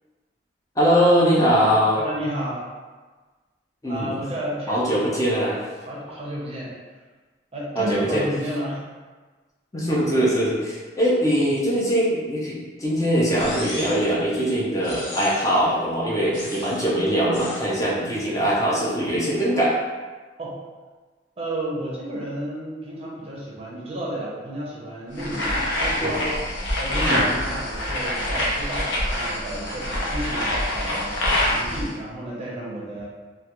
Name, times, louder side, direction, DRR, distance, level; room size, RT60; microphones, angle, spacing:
voice 1, 0.8-2.0 3.8-4.1 4.7-5.6 7.8-8.2 9.7-19.7 26.0-26.1 27.1-27.2, equal, 15° left, -6 dB, 0.4 m, -21 dB
voice 2, 2.0-2.6 3.9-5.2 5.8-6.7 7.5-8.8 20.4-20.6 21.4-26.4 26.8-31.2 31.5-33.1, right 1 dB, 30° right, -5 dB, 0.5 m, -32 dB
sound 1, 13.3-14.1 14.8-15.6 16.3-16.9 17.3-17.7, left 1 dB, 40° left, 0.8 m, -35 dB
sound 2, 25.2-31.9, left 1 dB, 80° left, 0.6 m, -25 dB
2.3 x 2.1 x 2.8 m, 1.4 s
head